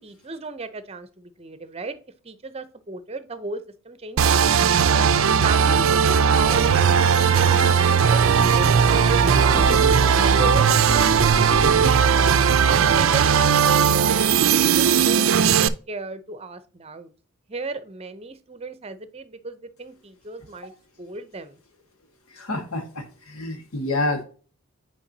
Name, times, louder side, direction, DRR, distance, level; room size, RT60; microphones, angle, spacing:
voice 1, 0.0-2.0 2.2-5.1 5.4-9.9 10.2-14.1 14.6-15.6 15.9-17.1 17.5-20.7 21.0-21.6, right 4 dB, 30° right, 12 dB, 0.6 m, -35 dB
sound 1, 4.2-15.7, right 7 dB, 70° right, 0.4 m, -18 dB
sound 2, 6.3-11.9, left 1 dB, 40° left, 1.3 m, -32 dB
voice 2, 22.3-24.2, left 2 dB, 90° left, 5 dB, 1.6 m, -28 dB
8.8 x 4.6 x 2.7 m, 0.38 s
head